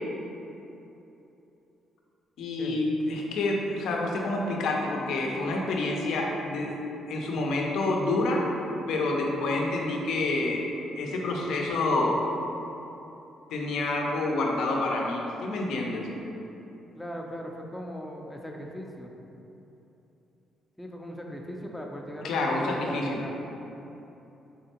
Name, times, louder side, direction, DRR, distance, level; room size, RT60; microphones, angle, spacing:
voice 1, 2.4-6.8 7.1-8.5 8.9-10.6 11.0-12.2 13.5-16.1 22.2-23.2, left 2 dB, 80° left, 0 dB, 0.5 m, -28 dB
voice 2, 17.0-19.1 20.8-23.3, equal, 5° left, 0 dB, 0.4 m, -39 dB
3.7 x 3.2 x 2.9 m, 3.0 s
cardioid pair, 90°, 0 cm